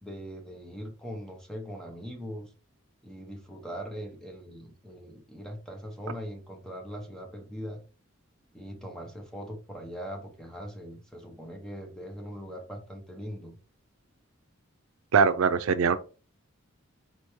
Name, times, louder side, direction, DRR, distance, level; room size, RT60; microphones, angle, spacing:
voice 1, 0.0-2.5 3.0-7.8 8.5-13.6, equal, 5° left, 0.9 m, -41 dB
voice 2, 15.1-16.0, right 6 dB, 90° right, 0.4 m, -22 dB
4.4 x 3.4 x 3.1 m
head